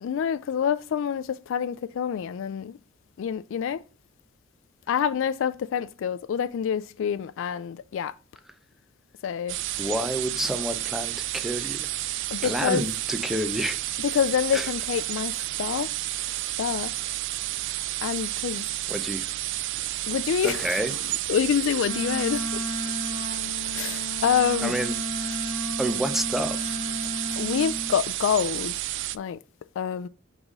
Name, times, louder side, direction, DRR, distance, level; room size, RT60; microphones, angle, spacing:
voice 1, 0.0-2.8 3.2-3.8 4.9-8.1 9.2-9.6 12.3-12.9 14.0-15.9 16.6-16.9 18.0-18.7 20.1-20.6 21.3-22.6 23.7-24.7 27.4-28.7 29.1-29.4 29.8-30.1, left 8 dB, 70° left, 0.3 m, -27 dB
sound 1, 9.5-29.2, right 15 dB, 65° right, 0.3 m, -31 dB
voice 2, 9.8-11.9 12.4-13.8 14.5-14.7 18.9-19.3 20.4-20.9 24.6-25.3 25.8-26.8, equal, ahead, 0.5 m, -29 dB
Wind instrument woodwind instrument, 21.8-27.9, left 2 dB, 20° left, 1.5 m, -34 dB
4.8 x 3.7 x 5.3 m
head